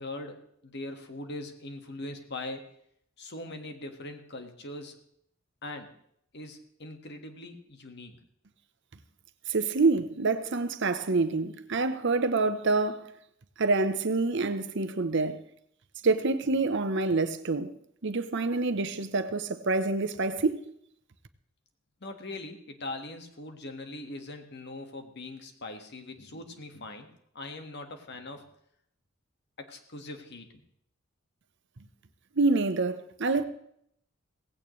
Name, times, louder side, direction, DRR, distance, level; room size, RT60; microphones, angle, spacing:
voice 1, 0.0-2.7 3.2-5.0 5.6-5.9 6.3-8.2 22.0-27.1 27.3-28.5 29.6-30.6, left 2 dB, 55° left, 1.7 m, -41 dB
voice 2, 9.5-13.1 13.6-15.4 16.0-17.7 18.0-20.6 32.4-33.4, right 3 dB, 60° right, 0.9 m, -27 dB
17.5 x 15.5 x 3.2 m
head